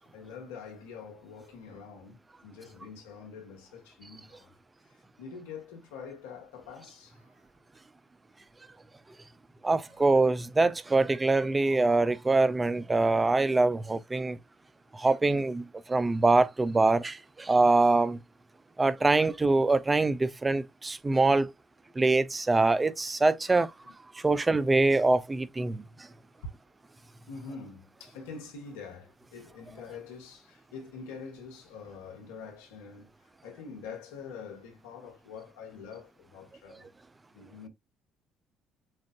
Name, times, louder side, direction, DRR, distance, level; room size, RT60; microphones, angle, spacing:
voice 1, 0.0-4.5 4.9-7.5 9.8-10.0 23.5-23.9 26.4-26.5 27.3-36.9 37.3-37.7, left 5 dB, 90° left, 1.7 m, -45 dB
voice 2, 9.6-14.4 14.9-18.2 18.8-21.5 22.0-23.7 24.1-25.8, right 3 dB, 20° right, 0.5 m, -24 dB
7.5 x 2.5 x 2.4 m
supercardioid pair, 70°, 0 cm